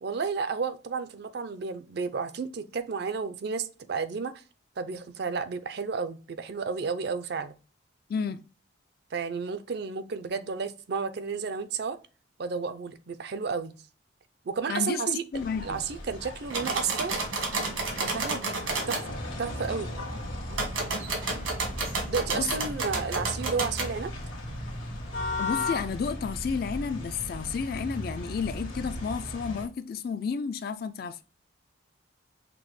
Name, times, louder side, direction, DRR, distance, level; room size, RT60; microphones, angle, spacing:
voice 1, 0.0-4.3 4.8-7.5 9.1-12.0 12.4-13.8 14.5-15.2 15.6-17.2 18.0-19.9 22.1-24.1, right 5 dB, 50° right, 0.4 m, -32 dB
voice 2, 8.1-8.4 14.7-15.8 22.3-22.5 25.4-31.2, left 6 dB, 50° left, 0.3 m, -31 dB
sound 1, 15.3-29.7, left 2 dB, 70° left, 1.4 m, -38 dB
sound 2, 16.5-19.0 20.5-23.9, right 3 dB, 85° right, 1.4 m, -31 dB
sound 3, 19.0-29.2, equal, 85° left, 1.2 m, -40 dB
5.9 x 2.1 x 3.1 m
head